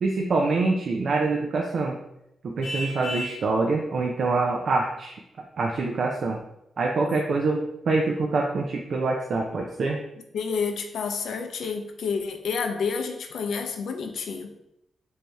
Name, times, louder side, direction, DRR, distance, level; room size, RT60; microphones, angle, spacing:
voice 1, 0.0-1.9 2.4-5.2 5.6-6.4 6.8-10.0, right 3 dB, 55° right, 1 dB, 0.4 m, -25 dB
Vehicle horn car horn honking, 2.6-3.4, left 1 dB, 35° left, 0.9 m, -33 dB
voice 2, 10.3-14.5, left 5 dB, 85° left, 5 dB, 0.5 m, -29 dB
3.1 x 2.7 x 3.4 m, 0.81 s
wide cardioid pair, 150°, 0 cm